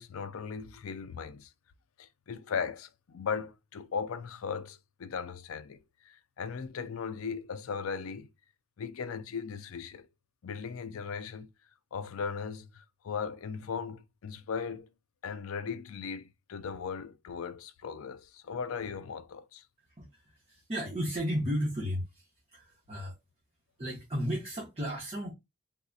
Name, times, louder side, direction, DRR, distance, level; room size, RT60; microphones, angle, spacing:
voice 1, 0.0-1.5 2.0-8.3 8.8-10.1 10.4-11.5 11.9-14.9 15.2-19.6, left 6 dB, 75° left, 0.4 m, -38 dB
voice 2, 20.5-23.1 23.8-25.3, equal, 30° right, 1.2 m, -34 dB
3.9 x 2.7 x 2.3 m
head